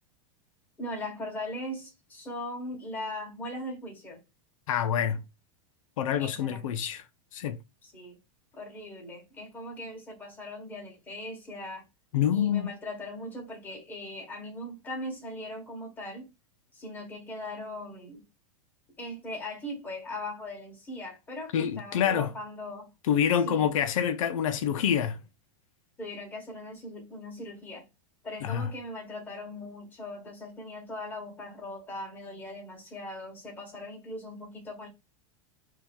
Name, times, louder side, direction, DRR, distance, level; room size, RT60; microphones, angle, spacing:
voice 1, 0.8-4.2 6.2-6.6 7.8-8.2 8.5-11.8 12.3-16.3 16.7-18.2 19.0-22.9 23.4-23.7 26.0-27.9 28.2-34.9, left 1 dB, 10° left, 1.3 m, -39 dB
voice 2, 4.7-5.2 6.0-7.0 7.3-7.6 12.1-12.7 21.5-22.3 23.1-25.2 28.4-28.7, left 9 dB, 80° left, 0.6 m, -26 dB
3.5 x 2.8 x 4.4 m
supercardioid pair, 165°, 17 cm